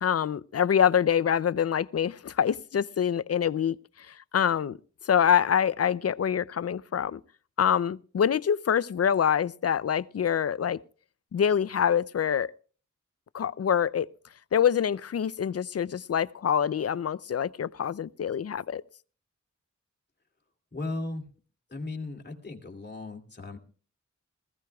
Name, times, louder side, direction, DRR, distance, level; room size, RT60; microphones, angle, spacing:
voice 1, 0.0-4.8 5.0-7.2 7.6-10.8 11.3-12.5 13.3-14.1 14.5-18.8, left 8 dB, 50° left, 0.5 m, -25 dB
voice 2, 20.7-21.3 21.7-23.6, left 2 dB, 35° left, 2.8 m, -36 dB
20.0 x 15.5 x 2.3 m
cardioid pair, 50°, 31 cm